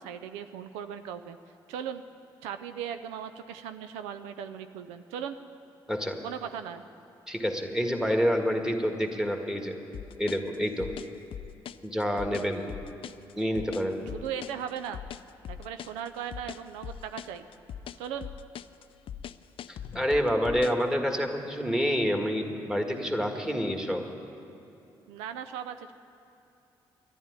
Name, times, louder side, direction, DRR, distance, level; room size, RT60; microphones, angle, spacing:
voice 1, 0.0-1.4 1.7-2.0 2.4-5.4 6.2-6.8 14.0-15.0 15.5-17.5 18.0-18.3 25.1-25.9, right 8 dB, 90° right, 9 dB, 0.5 m, -38 dB
voice 2, 5.9-6.2 7.3-9.8 10.2-10.9 11.8-12.7 13.4-14.0 19.7-24.0, equal, 5° right, 3 dB, 1.8 m, -28 dB
sound 1, 9.9-20.9, left 9 dB, 60° left, 0.4 m, -41 dB
11.0 x 11.0 x 9.6 m, 2.8 s
supercardioid pair, 55°, 10 cm